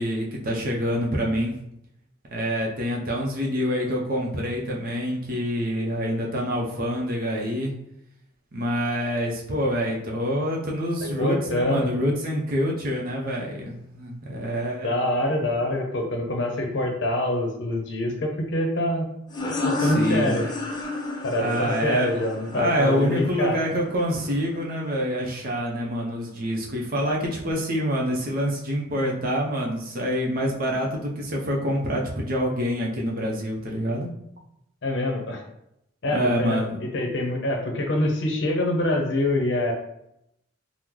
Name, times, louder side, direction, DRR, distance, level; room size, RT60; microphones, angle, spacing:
voice 1, 0.0-1.6 2.3-7.7 8.5-15.3 19.8-20.3 21.4-22.1 22.5-34.1 36.1-36.8, equal, 45° right, -1 dB, 0.6 m, -26 dB
voice 2, 11.2-11.9 14.8-19.1 19.6-20.4 21.2-23.6 34.8-35.4 36.0-39.7, left 1 dB, 60° left, 2 dB, 0.6 m, -25 dB
sound 1, 19.3-24.7, left 2 dB, 20° left, 0.4 m, -31 dB
3.0 x 2.0 x 3.7 m, 0.79 s
head